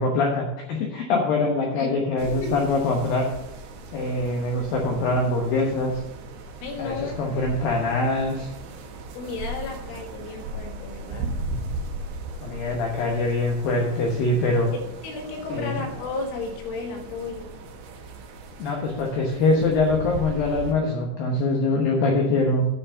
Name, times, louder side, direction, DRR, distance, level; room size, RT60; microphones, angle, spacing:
voice 1, 0.0-3.3 3.9-6.0 6.8-8.5 12.4-14.7 15.5-15.8 18.6-22.7, left 2 dB, 90° left, 0 dB, 2.0 m, -23 dB
voice 2, 2.2-2.6 3.9-4.2 6.6-7.1 9.1-11.4 14.7-17.5, left 3 dB, 75° left, 2 dB, 3.9 m, -34 dB
sound 1, 2.2-20.7, right 2 dB, 70° right, 2.9 m, -37 dB
9.4 x 5.7 x 6.6 m, 0.89 s
omnidirectional pair, 5.8 m